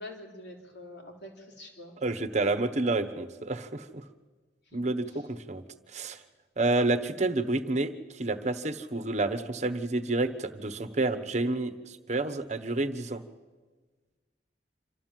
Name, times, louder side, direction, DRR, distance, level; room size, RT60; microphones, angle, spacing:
voice 1, 0.0-2.0 5.1-5.2, left 1 dB, 70° left, 1 dB, 3.8 m, -45 dB
voice 2, 2.0-3.9 4.7-5.6 5.9-6.2 6.6-13.2, right 2 dB, 40° right, 9 dB, 1.1 m, -29 dB
27.0 x 13.0 x 7.5 m, 1.4 s
head